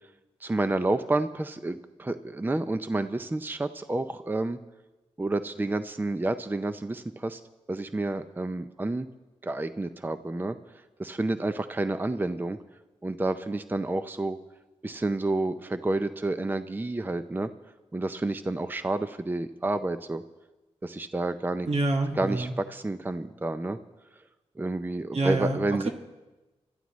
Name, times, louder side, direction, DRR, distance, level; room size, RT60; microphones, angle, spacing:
voice 1, 0.4-4.6 5.2-7.4 7.7-9.1 9.4-10.6 11.0-12.6 13.0-14.4 14.8-17.5 17.9-20.2 20.8-21.7 22.2-23.8 24.6-25.9, right 2 dB, 15° right, 10 dB, 0.5 m, -29 dB
voice 2, 21.7-22.5 25.1-25.6 25.8-25.9, right 2 dB, 70° right, 4 dB, 1.6 m, -26 dB
24.5 x 13.5 x 3.1 m, 1.1 s
cardioid pair, 70°, 11 cm